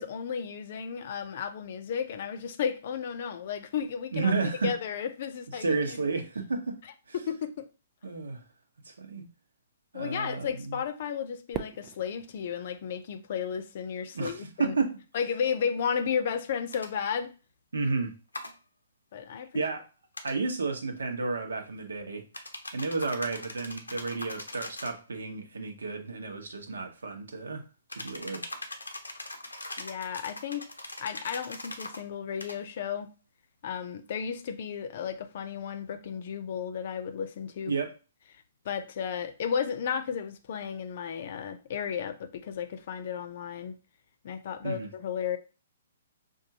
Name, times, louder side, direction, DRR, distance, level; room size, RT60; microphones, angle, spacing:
voice 1, 0.0-4.3 4.6-6.1 7.1-7.7 9.9-14.7 15.1-17.3 19.1-19.6 29.8-30.6 31.0-33.1 33.6-37.8 38.6-43.7 44.2-45.4, left 7 dB, 50° left, 0.6 m, -33 dB
voice 2, 4.1-4.7 5.6-6.8 8.0-8.4 8.9-9.3 9.9-10.8 14.1-15.0 17.7-18.1 19.5-19.8 20.2-22.2 22.7-27.6 27.9-28.4 37.7-37.9 44.6-44.9, right 4 dB, 75° right, 1.0 m, -31 dB
Fireworks, 11.5-13.8, right 11 dB, 30° right, 0.4 m, -42 dB
sound 1, 16.7-16.9 18.3-18.5 20.1-20.4 22.3-25.0 27.9-32.0 32.4-32.6, left 2 dB, 90° left, 0.7 m, -41 dB
5.3 x 2.5 x 2.8 m
figure-of-eight pair, 125°, 0 cm